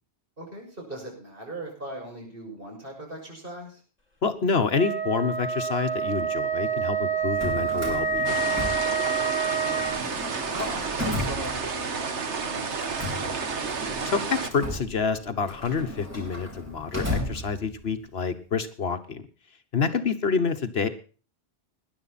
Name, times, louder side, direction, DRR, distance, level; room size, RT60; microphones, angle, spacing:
voice 1, 0.4-3.8 9.3-9.8 10.5-13.2 13.5-13.6 19.9-20.0, right 1 dB, 50° right, 0 dB, 6.7 m, -40 dB
voice 2, 4.2-8.4 14.0-19.2 19.7-20.9, left 5 dB, 65° left, 9 dB, 1.4 m, -27 dB
Wind instrument woodwind instrument, 4.7-10.0, right 5 dB, 35° left, 2.9 m, -27 dB
Drawer open or close, 7.2-9.4 9.7-12.1 12.7-18.0, left 1 dB, 15° right, 5.4 m, -35 dB
sound 1, 8.2-14.5, right 5 dB, 85° right, 1.7 m, -31 dB
20.0 x 10.5 x 4.2 m, 0.37 s
omnidirectional pair, 1.1 m